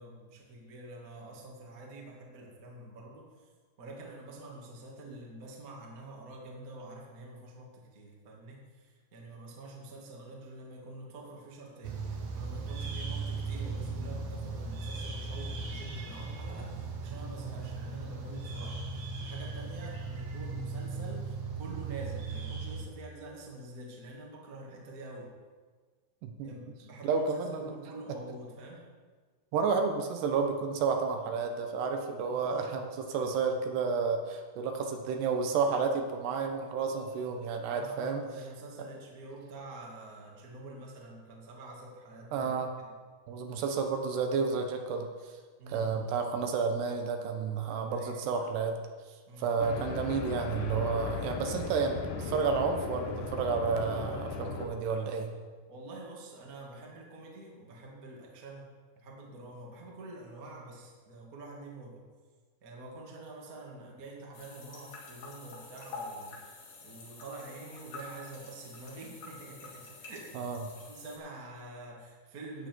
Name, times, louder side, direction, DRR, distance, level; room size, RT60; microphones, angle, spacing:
voice 1, 0.0-3.5 3.8-11.9 12.4-25.3 26.4-28.8 32.3-32.9 37.7-42.5 42.8-42.9 45.6-46.0 47.9-48.2 49.3-49.6 55.7-58.7 59.0-62.0 62.6-70.5 70.8-72.7, right 2 dB, 35° right, -2 dB, 1.4 m, -47 dB
sound 1, 11.8-22.8, right 4 dB, 60° right, 1.7 m, -37 dB
voice 2, 27.0-27.7 29.5-38.2 42.3-42.7 43.3-45.1 45.7-48.8 49.4-55.3 70.3-70.6, right 5 dB, 80° right, 4 dB, 3.1 m, -31 dB
sound 2, 49.6-54.7, left 4 dB, 75° left, 2.0 m, -37 dB
sound 3, 64.3-71.2, left 3 dB, 55° left, 3.2 m, -47 dB
13.0 x 9.0 x 4.6 m, 1.5 s
omnidirectional pair, 4.8 m